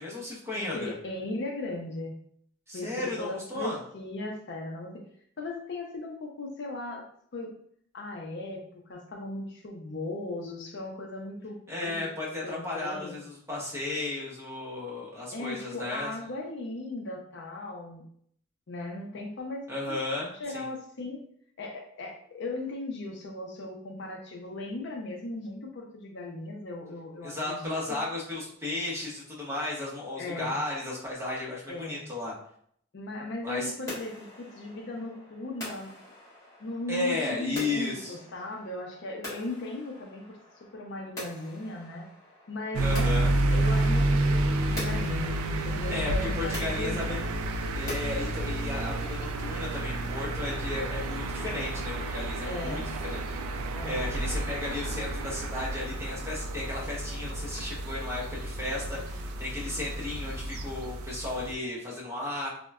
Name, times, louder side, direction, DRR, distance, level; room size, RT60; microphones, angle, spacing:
voice 1, 0.0-0.9 2.7-3.8 11.7-16.1 19.7-20.7 27.2-32.3 33.4-33.7 36.9-38.2 42.8-43.3 45.6-47.0 47.8-53.2 53.8-62.5, left 2 dB, 10° right, -5 dB, 0.8 m, -34 dB
voice 2, 0.5-2.2 2.7-4.9 5.4-7.0 7.3-7.5 7.9-8.6 8.9-12.1 12.4-13.2 15.3-18.0 18.7-20.0 20.4-21.2 21.6-27.8 30.2-30.6 31.7-32.0 32.9-35.9 36.6-40.4 40.7-42.0 42.5-47.2 52.4-52.9 53.7-54.0, left 2 dB, 55° left, 1 dB, 0.5 m, -37 dB
sound 1, 33.9-48.2, left 1 dB, 15° left, 1.1 m, -45 dB
sound 2, 42.7-61.5, right 2 dB, 80° right, 0.3 m, -30 dB
3.7 x 2.1 x 2.3 m, 0.64 s
head